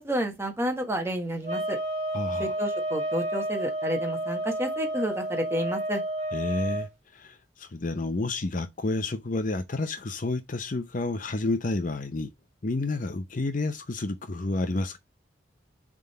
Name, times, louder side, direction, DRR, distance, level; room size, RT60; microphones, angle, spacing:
voice 1, 0.0-1.8 2.4-6.0, equal, 15° right, 1.5 m, -30 dB
sound 1, 1.4-6.9, right 1 dB, 35° right, 1.5 m, -30 dB
voice 2, 2.1-2.5 6.3-12.3 12.6-15.0, left 2 dB, 45° left, 0.6 m, -30 dB
7.3 x 3.8 x 4.2 m
head